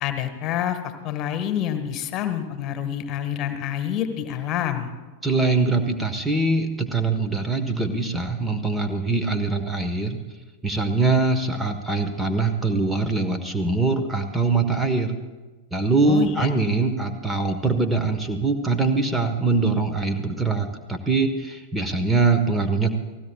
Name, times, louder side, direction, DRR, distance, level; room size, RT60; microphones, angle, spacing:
voice 1, 0.0-4.9 16.0-16.5, left 10 dB, 35° left, 8 dB, 1.7 m, -27 dB
voice 2, 5.2-10.2 10.6-15.1 15.7-22.9, right 3 dB, 10° right, 7 dB, 1.3 m, -23 dB
30.0 x 19.0 x 2.4 m, 1.2 s
figure-of-eight pair, 90°, 0 cm